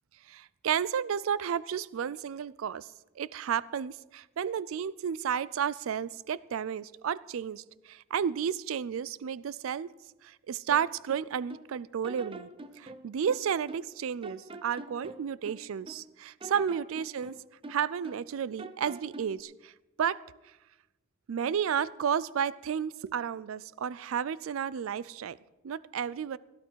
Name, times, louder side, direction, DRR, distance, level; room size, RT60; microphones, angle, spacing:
voice 1, 0.3-2.9 3.2-9.9 10.2-12.5 12.8-17.3 17.7-19.7 20.0-20.2 21.3-25.4 25.6-26.4, right 8 dB, 80° right, 19 dB, 0.4 m, -32 dB
sound 1, 10.7-11.7 12.0-14.0 14.2-16.1 16.4-18.3 18.6-19.4, right 2 dB, 25° right, 0.8 m, -45 dB
17.5 x 11.0 x 4.6 m, 1.0 s
head